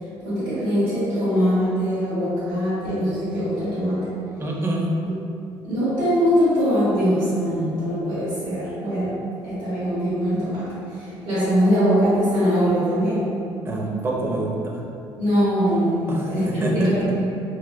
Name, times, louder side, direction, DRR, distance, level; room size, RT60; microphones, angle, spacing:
voice 1, 0.2-4.1 5.0-5.1 5.6-9.1 9.4-13.3 15.2-17.2, equal, 90° right, -14 dB, 1.3 m, -22 dB
voice 2, 4.4-4.9 13.6-14.8 16.1-16.9, right 2 dB, 25° right, -2 dB, 0.4 m, -26 dB
3.0 x 2.8 x 2.4 m, 2.6 s
cardioid pair, 120°, 10 cm